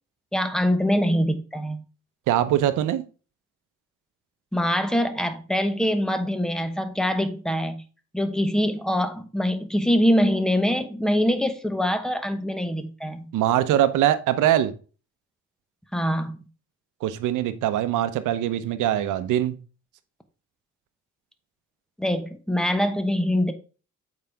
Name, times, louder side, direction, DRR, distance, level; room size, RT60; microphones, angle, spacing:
voice 1, 0.3-1.8 4.5-7.8 8.1-13.3 15.9-16.5 22.0-23.5, equal, ahead, 1.1 m, -24 dB
voice 2, 2.3-3.0 13.3-14.7 17.0-19.6, right 12 dB, 85° right, 0.8 m, -22 dB
7.7 x 5.0 x 3.4 m
cardioid pair, 90°, 30 cm